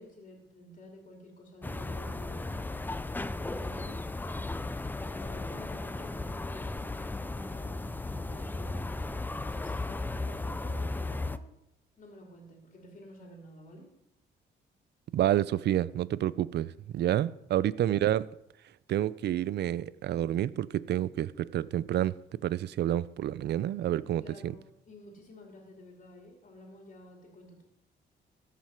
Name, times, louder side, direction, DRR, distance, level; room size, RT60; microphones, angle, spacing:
voice 1, 0.0-2.7 3.4-4.4 4.9-11.4 12.0-13.9 24.2-27.6, left 1 dB, 40° left, 2.8 m, -51 dB
sound 1, 1.6-11.4, left 2 dB, 10° left, 0.4 m, -35 dB
voice 2, 15.1-18.3 18.9-24.5, right 12 dB, 60° right, 0.4 m, -29 dB
14.0 x 4.9 x 5.7 m
cardioid pair, 90°, 20 cm